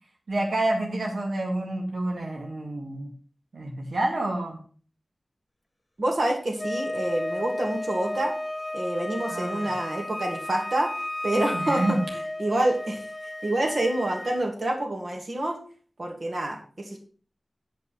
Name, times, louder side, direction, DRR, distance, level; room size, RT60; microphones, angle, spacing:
voice 1, 0.3-3.1 3.5-4.6 9.3-9.7 11.5-12.1, right 1 dB, 90° right, 0 dB, 2.0 m, -28 dB
voice 2, 6.0-8.3 8.7-10.9 11.2-13.1 13.4-15.6 16.0-17.0, right 1 dB, 60° right, 2 dB, 2.4 m, -27 dB
Wind instrument woodwind instrument, 6.6-14.4, left 1 dB, 15° left, 1.6 m, -33 dB
9.0 x 5.6 x 5.6 m, 0.42 s
wide cardioid pair, 90°, 0 cm